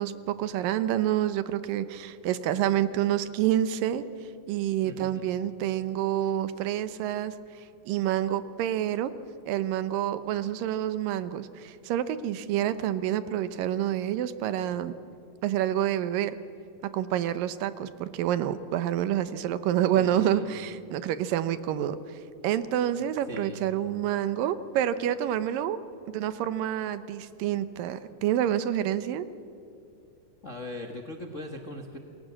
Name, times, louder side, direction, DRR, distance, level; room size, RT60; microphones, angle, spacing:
voice 1, 0.0-4.0 4.5-7.3 7.9-9.1 9.5-14.9 15.4-16.4 16.9-22.0 22.4-25.8 26.1-29.3, right 11 dB, 85° right, 13 dB, 2.6 m, -28 dB
voice 2, 4.8-5.3 19.9-20.5 23.3-23.6 30.4-32.0, left 2 dB, 45° left, 3 dB, 0.9 m, -40 dB
28.5 x 21.5 x 7.5 m, 2.6 s
omnidirectional pair, 3.9 m